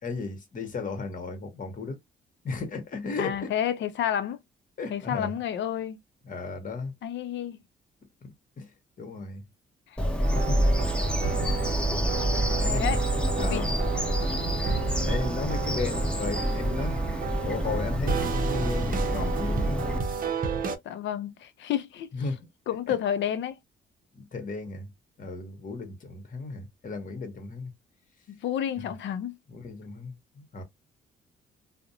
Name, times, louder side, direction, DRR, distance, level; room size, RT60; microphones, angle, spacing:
voice 1, 0.0-2.0 2.4-3.5 4.8-5.4 6.2-6.9 8.2-8.7 9.0-9.5 10.3-10.6 12.4-13.0 13.4-13.8 15.0-17.0 17.4-20.0 22.1-22.5 22.9-23.0 24.1-24.9 25.2-27.7 28.8-28.9 29.5-30.6, left 4 dB, 45° left, 1.0 m, -35 dB
voice 2, 3.2-4.4 4.9-6.0 7.0-7.6 12.6-13.0 13.4-13.7 20.8-22.1 22.7-23.6 28.3-29.4, left 10 dB, 65° left, 0.5 m, -30 dB
Bird vocalization bird call bird song, 10.0-20.0, equal, 5° left, 0.6 m, -27 dB
sound 1, 10.2-20.8, right 6 dB, 45° right, 0.6 m, -33 dB
2.5 x 2.1 x 2.7 m
cardioid pair, 90°, 20 cm